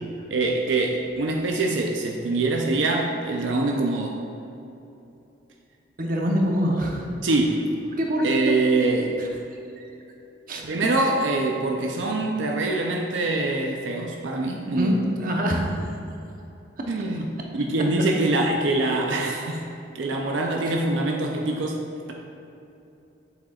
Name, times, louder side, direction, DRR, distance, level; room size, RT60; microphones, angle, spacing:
voice 1, 0.3-4.2 7.2-7.7 8.2-9.2 10.6-14.9 16.9-17.3 17.5-19.7 19.9-21.8, right 2 dB, 85° right, 1 dB, 0.6 m, -24 dB
voice 2, 6.0-7.1 8.0-8.5 9.2-9.3 9.8-9.9 10.5-10.6 14.7-15.7, equal, 50° right, 0 dB, 0.9 m, -24 dB
7.7 x 7.7 x 2.4 m, 2.8 s
head